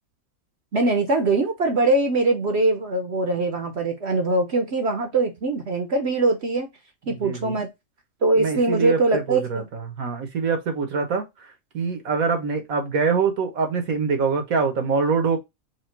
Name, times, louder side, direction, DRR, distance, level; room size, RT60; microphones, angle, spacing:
voice 1, 0.7-6.7 7.1-7.7 8.2-9.7, right 2 dB, 55° right, 1.1 m, -22 dB
voice 2, 7.1-7.6 8.4-11.5 11.7-15.4, right 5 dB, 80° right, 1.6 m, -24 dB
4.9 x 2.4 x 4.4 m
omnidirectional pair, 1.5 m